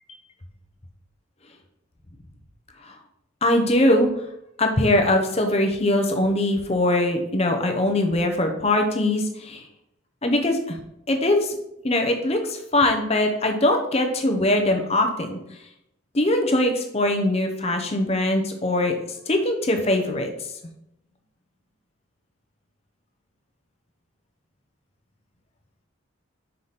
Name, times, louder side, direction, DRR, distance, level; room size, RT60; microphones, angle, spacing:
voice 1, 3.4-4.1 4.6-9.6 10.2-10.8 11.1-11.5 11.8-15.4 16.1-19.0 19.3-20.3, left 1 dB, 30° left, 4 dB, 0.8 m, -21 dB
5.6 x 4.9 x 4.0 m, 0.82 s
head